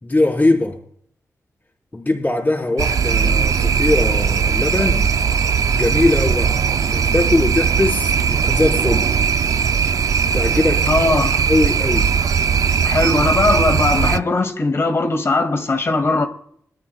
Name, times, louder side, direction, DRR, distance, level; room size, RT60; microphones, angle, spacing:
voice 1, 0.0-0.8 1.9-5.1 5.7-6.6 6.9-9.1 10.3-10.9 11.4-12.1, left 2 dB, 30° left, 4.0 m, -20 dB
sound 1, 2.8-14.2, right 6 dB, 85° right, 0.5 m, -18 dB
voice 2, 10.9-11.4 12.8-16.3, left 2 dB, 50° left, 2.2 m, -19 dB
22.5 x 13.0 x 2.3 m
wide cardioid pair, 80°, 6 cm